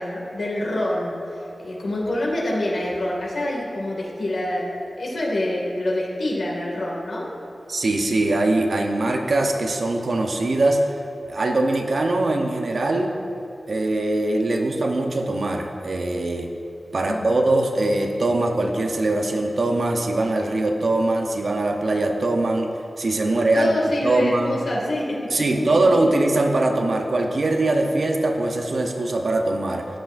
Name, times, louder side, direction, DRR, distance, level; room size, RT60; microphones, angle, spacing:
voice 1, 0.0-7.3 17.1-17.3 23.3-25.2 25.5-25.6, left 1 dB, 80° left, -3 dB, 2.2 m, -26 dB
voice 2, 7.7-10.9 11.3-13.2 13.7-16.5 16.9-22.7 23.0-23.8 24.0-24.6 25.3-29.9, right 2 dB, 60° right, 3 dB, 0.8 m, -22 dB
13.5 x 8.9 x 2.6 m, 2.8 s
wide cardioid pair, 105°, 0 cm